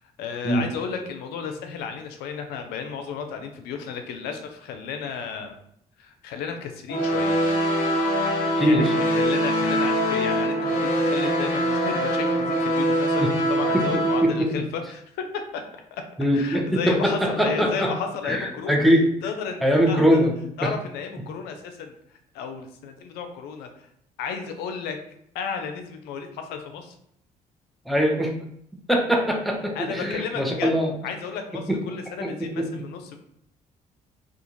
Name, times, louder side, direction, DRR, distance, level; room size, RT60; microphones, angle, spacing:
voice 1, 0.2-5.5 6.0-7.4 8.6-15.0 15.5-15.6 15.9-16.0 16.3-18.8 19.2-20.3 20.6-23.9 24.2-25.0 25.3-27.0 29.8-30.7 31.0-33.2, left 6 dB, 80° left, 6 dB, 0.5 m, -33 dB
sound 1, 6.9-14.2, equal, 60° left, 0.9 m, -23 dB
voice 2, 8.6-8.9 13.2-13.3 13.7-14.5 16.2-17.9 18.3-19.1 19.6-20.3 20.6-20.7 27.9-28.3 28.9-30.9 31.7-31.8 32.2-32.7, equal, ahead, 1 dB, 0.7 m, -22 dB
2.4 x 2.3 x 3.0 m, 0.71 s
supercardioid pair, 60°, 16 cm